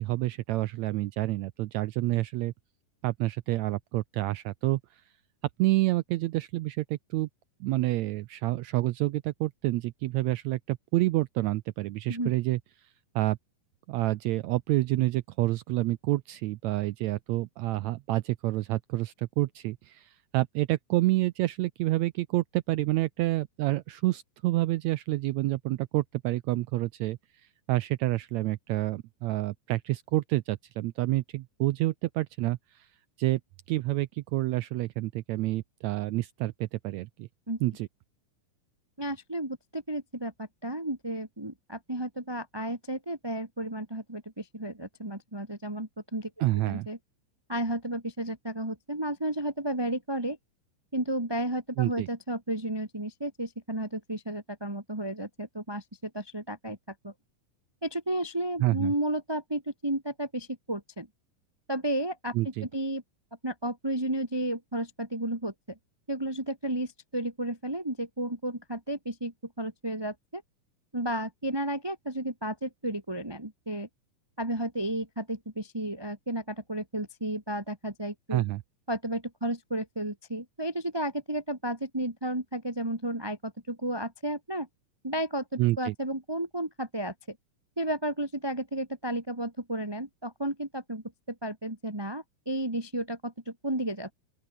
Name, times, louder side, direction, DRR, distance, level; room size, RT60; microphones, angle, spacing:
voice 1, 0.0-2.5 3.0-4.8 5.6-7.3 7.6-12.6 13.1-13.4 13.9-27.2 27.7-32.9 33.2-33.4 33.7-37.3 37.6-37.9 46.4-46.9 51.8-52.1 58.6-58.9 62.3-62.7 78.3-78.6 85.6-85.9, right 17 dB, 85° right, 1.6 m, -28 dB
voice 2, 39.0-47.0 47.5-50.4 50.9-56.8 57.0-57.1 57.8-61.1 61.7-63.0 63.4-65.8 66.1-70.4 70.9-73.9 74.4-78.4 78.9-84.7 85.0-85.4 85.8-87.4 87.8-94.1, right 1 dB, 5° right, 3.0 m, -33 dB
open air
omnidirectional pair, 3.8 m